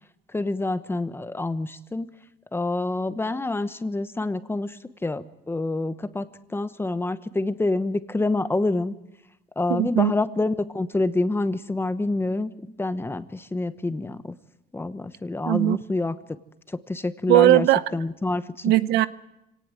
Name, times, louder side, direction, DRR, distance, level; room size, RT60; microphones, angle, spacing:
voice 1, 0.3-2.1 2.5-8.9 9.6-12.5 12.8-14.3 14.7-16.2 16.7-17.7 17.9-18.7, left 2 dB, 15° left, 12 dB, 1.1 m, -27 dB
voice 2, 9.7-10.1 15.5-15.8 17.3-17.8 18.6-19.1, right 16 dB, 85° right, 15 dB, 0.8 m, -18 dB
25.5 x 18.0 x 7.7 m, 0.89 s
cardioid pair, 110°, 17 cm